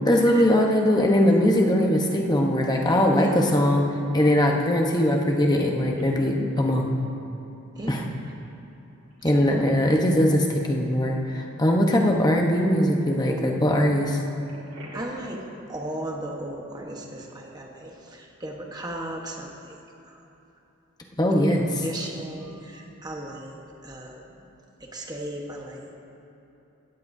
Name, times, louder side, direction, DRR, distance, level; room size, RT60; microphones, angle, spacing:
voice 1, 0.0-3.8 4.1-6.9 7.9-8.0 9.2-14.2 21.2-21.8, equal, 20° left, 0 dB, 1.0 m, -21 dB
Telephone, 5.3-6.0 6.6-6.7 8.4-8.6 9.0-9.1 14.4-15.3 22.4-22.6, left 5 dB, 70° right, 2.5 m, -38 dB
voice 2, 7.8-8.1 9.3-9.5 14.9-19.8 20.1-20.2 21.5-24.2 24.8-25.9, right 1 dB, 20° right, 0 dB, 1.2 m, -36 dB
16.5 x 14.5 x 2.7 m, 2.9 s
head